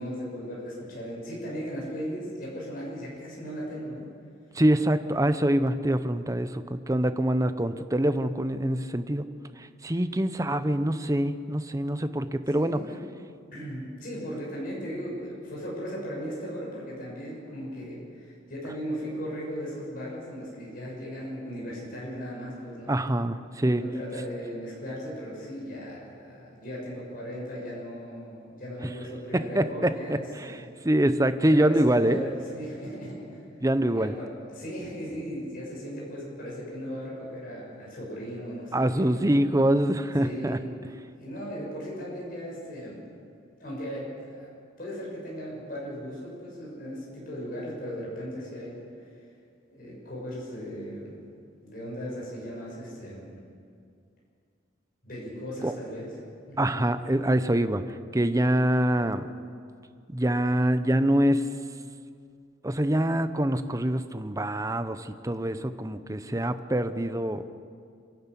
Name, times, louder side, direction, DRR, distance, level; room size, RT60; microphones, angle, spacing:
voice 1, 0.0-4.1 12.5-13.0 13.5-22.9 23.7-30.6 31.5-33.4 33.9-39.3 40.2-43.0 43.6-44.5 44.8-49.1 49.7-51.2 51.6-53.4 55.0-56.1 56.5-56.8, equal, 45° left, -4 dB, 6.9 m, -37 dB
voice 2, 4.5-9.2 9.6-12.8 22.9-23.8 29.3-32.2 33.6-34.1 38.7-40.6 55.6-55.7 56.6-59.3 60.1-61.5 62.6-67.4, right 1 dB, 15° right, 10 dB, 0.7 m, -25 dB
26.5 x 11.5 x 8.4 m, 2.3 s
head